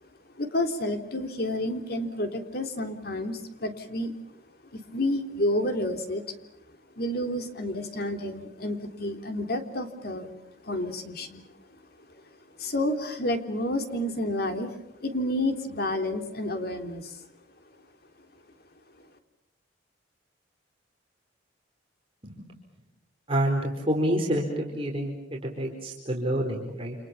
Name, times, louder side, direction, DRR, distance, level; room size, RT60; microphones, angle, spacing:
voice 1, 0.4-4.1 4.7-6.2 7.0-10.3 10.6-11.5 12.6-17.2, left 1 dB, 55° left, 6 dB, 3.5 m, -30 dB
voice 2, 23.3-27.0, right 1 dB, 30° right, 0 dB, 4.4 m, -28 dB
29.5 x 28.0 x 7.2 m, 0.80 s
head